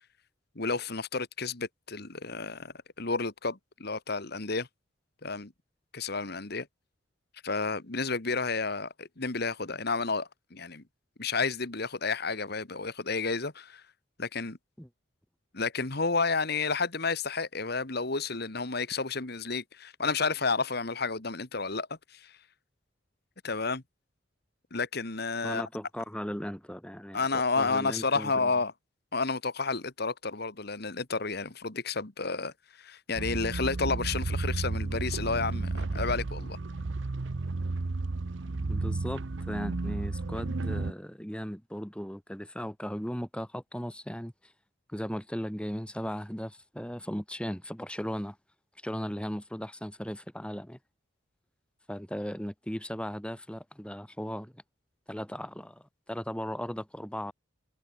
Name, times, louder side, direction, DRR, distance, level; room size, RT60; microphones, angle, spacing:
voice 1, 0.6-4.7 5.2-5.5 5.9-6.7 7.4-10.8 11.2-13.8 14.2-14.6 15.5-22.4 23.4-23.8 24.7-25.7 27.1-28.7 29.1-36.6, left 4 dB, 55° left, 1.9 m, -31 dB
voice 2, 25.4-28.5 38.7-44.5 44.9-48.4 48.8-50.8 51.9-54.6 55.1-57.3, equal, 5° left, 4.2 m, -37 dB
sound 1, 33.1-40.9, right 3 dB, 70° right, 0.8 m, -32 dB
head